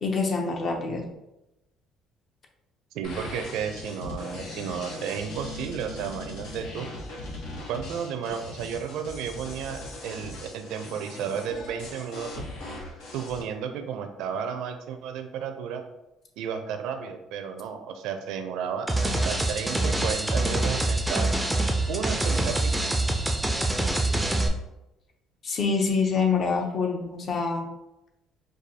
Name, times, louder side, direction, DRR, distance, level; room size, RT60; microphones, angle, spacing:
voice 1, 0.0-1.0 25.4-27.7, left 4 dB, 40° left, 2 dB, 0.6 m, -26 dB
voice 2, 2.9-6.9 7.7-12.5 13.1-15.8 16.4-21.3 21.9-22.9, right 7 dB, 80° right, 7 dB, 0.4 m, -33 dB
sound 1, 3.0-13.4, left 2 dB, 85° left, 1.1 m, -39 dB
sound 2, 18.9-24.5, right 2 dB, 5° right, 0.4 m, -25 dB
4.6 x 2.3 x 2.7 m, 0.92 s
cardioid pair, 130°, 0 cm